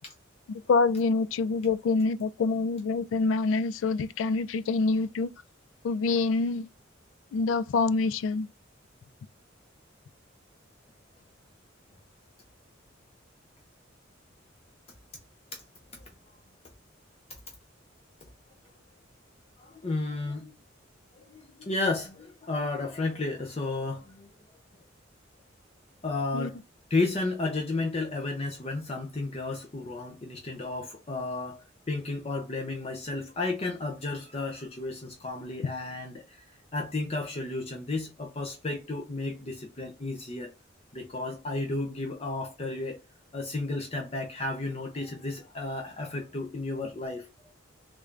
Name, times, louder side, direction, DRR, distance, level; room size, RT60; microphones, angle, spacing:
voice 1, 0.7-5.3 5.8-6.7 7.3-8.5 26.3-26.5, left 4 dB, 80° left, 0.3 m, -26 dB
voice 2, 19.6-20.5 21.3-24.3 26.0-26.6 26.9-36.5 36.7-40.5 40.9-43.0 43.3-47.3, left 2 dB, 30° left, 0.6 m, -33 dB
3.5 x 2.5 x 3.2 m
head